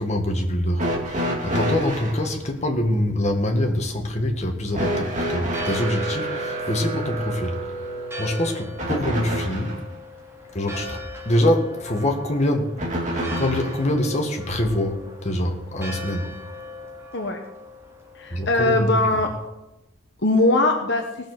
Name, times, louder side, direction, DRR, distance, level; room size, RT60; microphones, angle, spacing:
voice 1, 0.0-7.6 8.2-9.8 10.5-12.8 13.0-16.3 18.3-18.9, left 1 dB, 35° left, 2 dB, 1.7 m, -25 dB
sound 1, 0.8-2.2 4.7-9.8 12.8-13.8 15.1-15.2 16.2-16.3, right 1 dB, 35° right, 2.3 m, -28 dB
Church bell, 5.4-19.5, left 1 dB, 10° right, 2.8 m, -40 dB
voice 2, 18.2-19.3 20.2-21.0, left 2 dB, 55° left, 3 dB, 1.2 m, -20 dB
17.5 x 7.0 x 6.2 m, 0.95 s
head